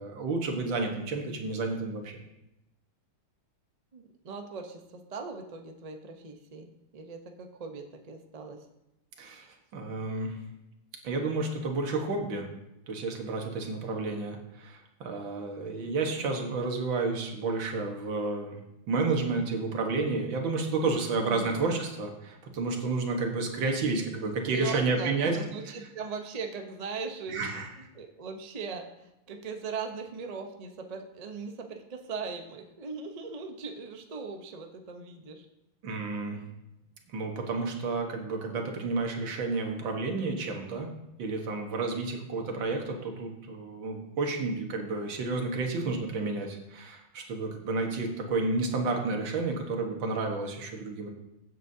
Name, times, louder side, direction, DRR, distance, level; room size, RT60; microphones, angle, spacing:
voice 1, 0.0-2.2 9.2-9.5 9.7-10.4 11.0-12.5 12.9-18.6 18.9-25.4 25.7-25.8 27.3-27.7 35.8-36.4 37.1-40.9 41.2-51.1, right 3 dB, 65° right, 2 dB, 2.1 m, -31 dB
voice 2, 3.9-8.7 21.3-21.6 24.2-27.7 27.9-35.5, right 4 dB, 85° right, 4 dB, 0.3 m, -39 dB
16.0 x 8.2 x 2.8 m, 0.91 s
omnidirectional pair, 2.3 m